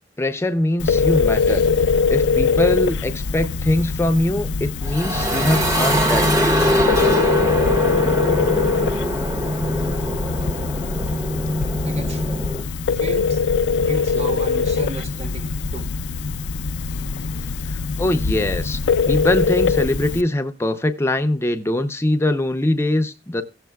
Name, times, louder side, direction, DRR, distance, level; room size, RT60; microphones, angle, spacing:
voice 1, 0.2-1.7 2.1-6.8 17.7-18.8 19.1-23.4, left 1 dB, 15° left, 0.6 m, -22 dB
Telephone, 0.8-20.2, left 5 dB, 80° left, 0.4 m, -22 dB
sound 1, 4.8-12.6, equal, 20° right, 1.0 m, -22 dB
voice 2, 11.8-13.4 13.8-15.9, right 3 dB, 40° right, 0.6 m, -34 dB
17.0 x 7.4 x 2.3 m
head